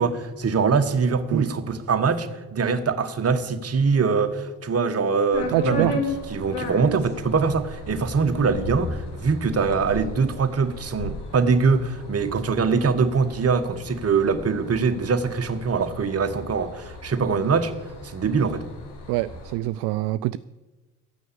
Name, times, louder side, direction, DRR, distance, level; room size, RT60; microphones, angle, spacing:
voice 1, 0.0-6.0 6.3-17.7 18.0-18.6, right 5 dB, 30° right, 1.3 m, -23 dB
sound 1, 5.3-19.5, left 2 dB, 60° left, 2.5 m, -36 dB
voice 2, 5.5-5.9 19.1-20.4, right 17 dB, 60° right, 0.5 m, -25 dB
13.0 x 9.2 x 6.9 m
figure-of-eight pair, 45°, 46 cm